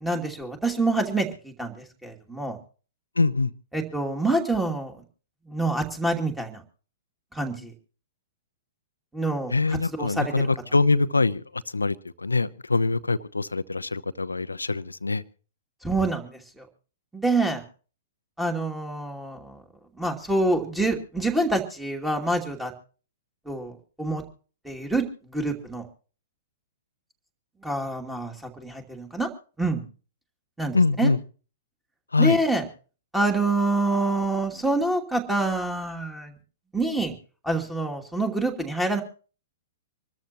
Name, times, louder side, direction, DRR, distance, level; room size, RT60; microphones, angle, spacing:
voice 1, 0.0-2.6 3.7-5.0 5.5-6.6 7.3-7.7 9.1-9.5 9.9-10.5 15.8-16.7 17.1-17.6 18.4-19.6 20.0-22.7 23.5-24.2 24.6-25.9 27.6-29.3 29.6-29.8 30.6-31.1 32.2-32.6 33.1-36.3 36.7-37.1 37.4-39.0, right 2 dB, 5° right, 3 dB, 2.7 m, -26 dB
voice 2, 3.2-3.5 9.5-11.4 11.7-15.2 30.7-31.2 32.1-32.4, left 3 dB, 80° left, 16 dB, 0.8 m, -23 dB
26.0 x 13.5 x 3.0 m, 0.39 s
figure-of-eight pair, 110°, 0 cm